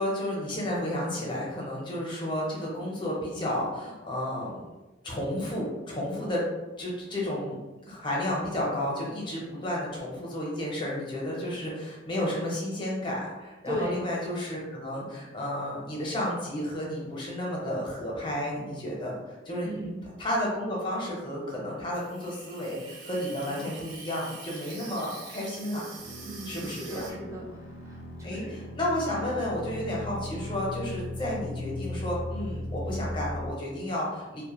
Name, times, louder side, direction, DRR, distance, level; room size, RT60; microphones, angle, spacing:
voice 1, 0.0-4.6 5.0-6.4 6.8-7.6 7.9-19.2 19.5-19.8 20.2-25.8 26.5-27.1 28.2-34.4, left 1 dB, 25° left, -4 dB, 0.7 m, -32 dB
voice 2, 13.7-14.1 19.6-20.0 26.2-28.6, equal, 15° right, -3 dB, 0.4 m, -37 dB
Water tap faucet / Sink (filling or washing), 21.9-27.1, right 4 dB, 80° right, 0.4 m, -45 dB
sound 1, 26.0-33.5, left 1 dB, 65° left, 0.4 m, -38 dB
2.3 x 2.1 x 2.9 m, 1.1 s
head